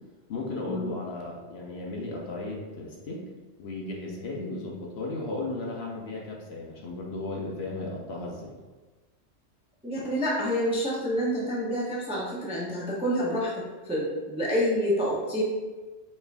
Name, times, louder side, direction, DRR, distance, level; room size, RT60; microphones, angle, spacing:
voice 1, 0.3-3.2 3.6-8.6, left 2 dB, 60° left, -1 dB, 0.8 m, -35 dB
voice 2, 9.8-15.4, equal, 10° right, -5 dB, 0.4 m, -28 dB
4.3 x 2.5 x 3.3 m, 1.3 s
omnidirectional pair, 1.3 m